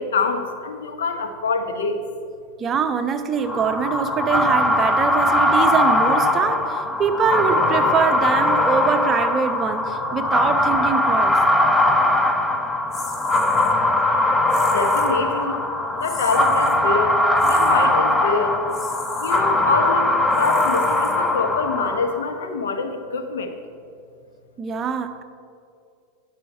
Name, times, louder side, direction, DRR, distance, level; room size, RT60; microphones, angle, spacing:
voice 1, 0.0-2.0 14.7-15.5 16.0-17.2 17.4-18.6 19.2-23.5, left 4 dB, 85° left, 6 dB, 0.9 m, -25 dB
voice 2, 2.6-11.4 24.6-25.2, right 6 dB, 30° right, 8 dB, 0.7 m, -23 dB
sound 1, 3.4-22.3, left 1 dB, 10° left, 0.7 m, -20 dB
sound 2, 12.9-13.7 14.5-15.2 16.0-16.8 17.4-17.9 18.7-19.4 20.3-21.5, left 4 dB, 30° left, 1.0 m, -39 dB
10.0 x 5.6 x 5.3 m, 2.4 s
hypercardioid pair, 110°, 0 cm